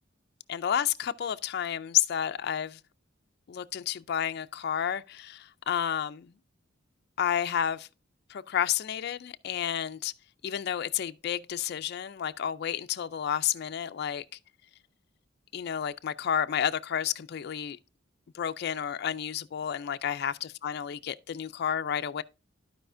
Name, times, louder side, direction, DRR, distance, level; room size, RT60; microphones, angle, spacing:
voice 1, 0.5-2.8 3.5-6.3 7.2-7.9 8.3-10.1 10.4-14.2 15.5-17.8 18.3-20.4 20.6-22.2, left 9 dB, 55° left, 0.3 m, -31 dB
13.5 x 4.9 x 2.5 m
head